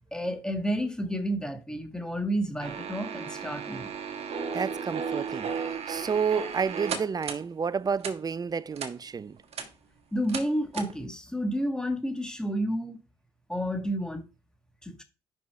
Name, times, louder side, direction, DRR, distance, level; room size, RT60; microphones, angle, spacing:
voice 1, 0.1-3.9 10.1-13.0 13.5-14.3 14.8-15.0, equal, 5° left, 1.8 m, -30 dB
sound 1, 2.6-7.4 8.0-8.1 8.8-8.9 9.4-9.7 10.3-10.5 10.7-10.9, right 6 dB, 55° right, 1.5 m, -34 dB
voice 2, 4.5-5.5 5.9-9.4, right 6 dB, 30° right, 0.5 m, -30 dB
5.9 x 5.6 x 4.5 m
hypercardioid pair, 50°, 12 cm